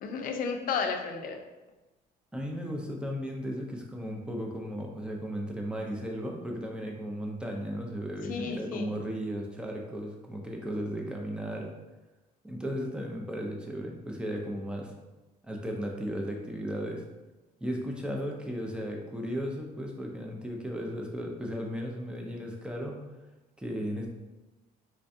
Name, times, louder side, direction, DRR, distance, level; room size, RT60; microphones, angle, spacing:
voice 1, 0.0-1.4 8.2-8.9, left 5 dB, 55° left, 4 dB, 0.5 m, -32 dB
voice 2, 2.3-11.7 12.4-14.9 15.4-17.0 17.6-23.0 23.6-24.1, equal, 5° right, 0 dB, 0.5 m, -35 dB
4.3 x 2.2 x 2.6 m, 1.1 s
cardioid pair, 110°, 17 cm